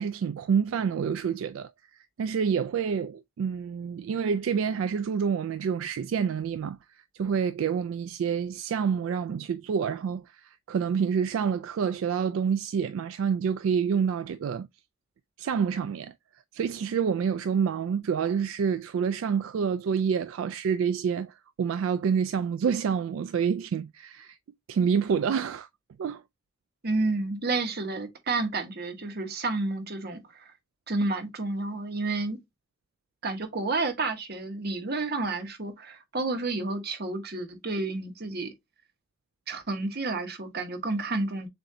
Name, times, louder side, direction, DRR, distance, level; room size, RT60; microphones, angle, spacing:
voice 1, 0.0-6.8 7.1-14.7 15.4-16.1 16.5-24.4 24.7-25.7 26.0-26.2, right 6 dB, 75° right, 0.3 m, -28 dB
voice 2, 26.8-30.5 30.9-32.4 33.2-38.5 39.5-41.5, right 3 dB, 50° right, 1.2 m, -30 dB
7.0 x 2.6 x 2.7 m
head